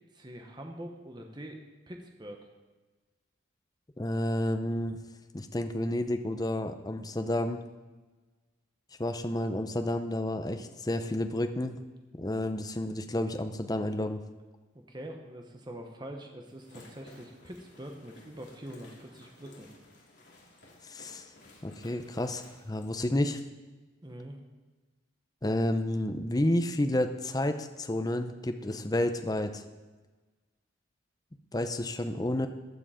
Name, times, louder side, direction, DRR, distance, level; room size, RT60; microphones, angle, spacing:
voice 1, 0.1-1.6 1.9-2.5 14.7-19.7 24.0-24.4, right 1 dB, 20° right, 2 dB, 1.1 m, -44 dB
voice 2, 4.0-5.0 5.3-7.6 9.0-11.8 12.2-14.2 20.8-21.3 21.6-23.4 25.4-29.6 31.5-32.5, left 1 dB, 20° left, 7 dB, 0.6 m, -30 dB
sound 1, 16.4-22.9, left 1 dB, 60° left, 3.3 m, -55 dB
15.0 x 10.0 x 5.0 m, 1.3 s
head